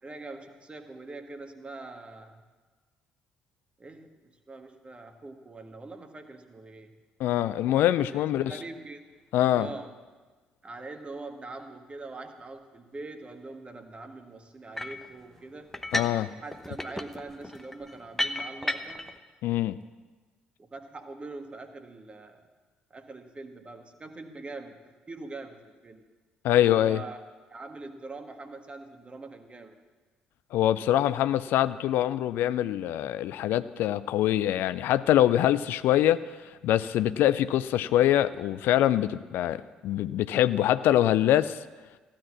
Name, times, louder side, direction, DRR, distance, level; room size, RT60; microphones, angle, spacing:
voice 1, 0.0-2.4 3.8-6.9 8.1-9.1 9.5-10.0 10.6-15.7 16.3-19.1 20.6-22.4 22.9-26.0 26.6-27.2 27.5-29.7, right 3 dB, 25° right, 6 dB, 1.7 m, -43 dB
voice 2, 7.2-8.6 9.3-9.7 15.9-16.3 19.4-19.8 26.4-27.0 30.5-36.2 36.6-41.6, left 12 dB, 60° left, 14 dB, 0.4 m, -24 dB
sound 1, 14.8-15.1 15.7-16.2 16.5-19.1, left 1 dB, 10° left, 1.0 m, -33 dB
15.5 x 10.0 x 7.3 m, 1.3 s
figure-of-eight pair, 45°, 4 cm